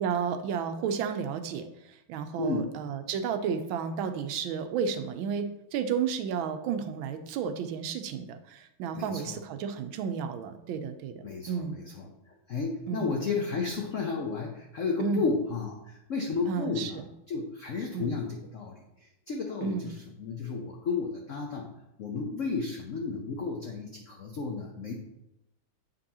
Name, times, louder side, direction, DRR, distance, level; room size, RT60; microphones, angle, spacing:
voice 1, 0.0-1.7 2.1-11.8 12.9-13.1 15.0-15.2 16.5-17.1 17.9-18.1 19.6-19.9, right 7 dB, 80° right, 9 dB, 1.3 m, -32 dB
voice 2, 2.4-2.7 8.9-9.4 11.2-12.1 12.5-17.0 17.3-18.8 19.3-21.7 22.0-24.9, left 4 dB, 85° left, 1 dB, 0.7 m, -32 dB
7.8 x 5.3 x 2.8 m, 0.87 s
omnidirectional pair, 2.3 m